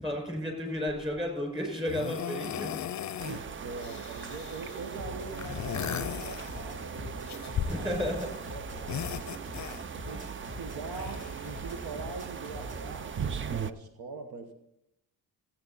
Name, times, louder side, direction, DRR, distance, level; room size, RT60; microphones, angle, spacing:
voice 1, 0.0-2.8 3.3-3.4 7.7-8.3 10.1-10.3, left 1 dB, 15° right, 1 dB, 5.1 m, -33 dB
sound 1, 0.9-1.2 1.9-3.4 3.7-4.8 5.3-6.9 7.3-8.4 8.7-10.1 10.9-12.0 12.8-12.9, left 9 dB, 50° left, 0.5 m, -38 dB
sound 2, 3.2-13.7, right 7 dB, 30° right, 0.4 m, -39 dB
voice 2, 3.2-7.9 8.5-9.4 10.0-14.5, right 4 dB, 75° right, 5 dB, 1.2 m, -43 dB
sound 3, 4.9-12.9, equal, 55° right, 3.6 m, -44 dB
16.0 x 8.5 x 4.0 m, 0.83 s
cardioid pair, 95°, 38 cm